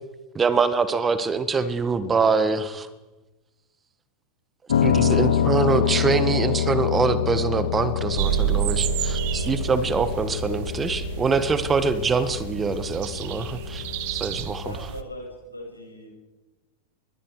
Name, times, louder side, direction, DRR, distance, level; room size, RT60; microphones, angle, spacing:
voice 1, 0.3-2.9 4.8-13.8 14.1-14.7, right 4 dB, 20° right, 14 dB, 1.6 m, -24 dB
Piano, 4.7-14.8, left 8 dB, 65° left, 1.4 m, -26 dB
sound 1, 8.2-15.0, right 15 dB, 50° right, 1.4 m, -30 dB
voice 2, 14.6-16.1, left 1 dB, 85° left, 0 dB, 7.6 m, -39 dB
25.5 x 22.5 x 4.9 m, 1.1 s
figure-of-eight pair, 90°, 0 cm